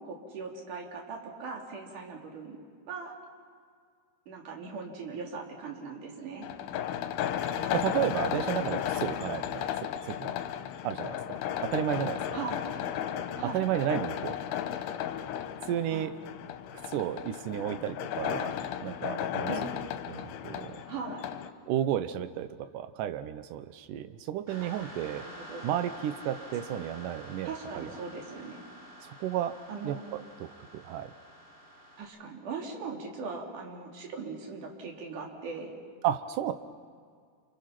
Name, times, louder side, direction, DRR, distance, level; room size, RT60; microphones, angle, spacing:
voice 1, 0.0-2.6 2.9-3.2 4.3-6.4 12.3-12.6 13.4-13.6 15.9-16.1 19.5-19.7 20.9-21.2 24.6-24.7 25.1-25.7 27.4-28.6 29.7-30.0 32.0-35.7, right 5 dB, 50° right, 0 dB, 4.4 m, -40 dB
sound 1, 6.4-21.5, left 10 dB, 75° left, 2.9 m, -34 dB
voice 2, 7.7-10.3 10.8-12.2 13.5-14.4 15.7-16.1 16.9-18.6 18.8-19.5 20.1-20.8 21.7-25.2 25.6-27.9 29.0-29.5 29.8-30.5 30.9-31.1 36.0-36.5, right 11 dB, 90° right, 10 dB, 1.8 m, -32 dB
sound 2, 24.5-32.0, equal, 10° right, 8.1 m, -48 dB
29.5 x 28.0 x 5.9 m, 2.1 s
omnidirectional pair, 4.9 m